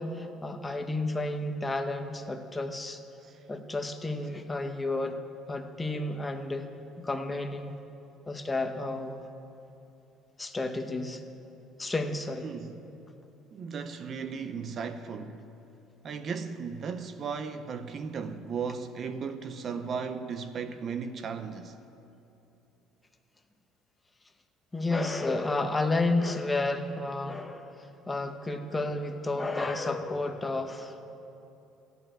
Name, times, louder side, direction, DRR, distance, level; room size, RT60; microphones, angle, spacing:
voice 1, 0.0-3.0 3.5-5.2 5.5-6.7 7.0-7.7 8.3-9.2 10.4-11.2 11.8-12.5 24.7-31.0, left 2 dB, 15° left, 0.8 m, -31 dB
voice 2, 12.4-12.9 13.5-15.5 16.0-21.8, right 5 dB, 40° right, 0.6 m, -36 dB
14.5 x 6.9 x 8.8 m
cardioid pair, 130°, 0 cm